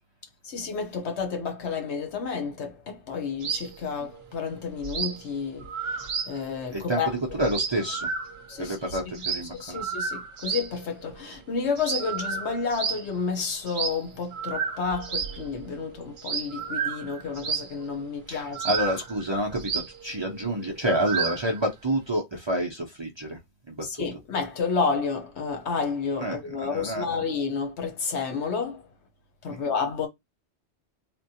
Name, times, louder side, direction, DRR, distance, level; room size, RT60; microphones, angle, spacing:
voice 1, 0.4-7.1 8.5-9.0 9.5-18.7 23.8-28.8 29.4-30.1, left 5 dB, 75° left, 1.2 m, -30 dB
sound 1, 3.4-3.7 4.0-4.2 4.5-4.6 4.8-5.2 5.6-6.4 6.7-6.8 6.9-7.0 7.3-8.6 8.9-10.7 11.1-11.4 11.8-13.1 13.7-14.0 14.3-15.9 16.2-17.9 18.5-21.6, right 6 dB, 65° right, 0.8 m, -32 dB
voice 2, 6.7-8.1 8.6-9.8 18.3-23.4 23.7-23.8 26.2-27.0, right 1 dB, 30° right, 0.6 m, -28 dB
3.6 x 2.2 x 2.7 m
omnidirectional pair, 1.1 m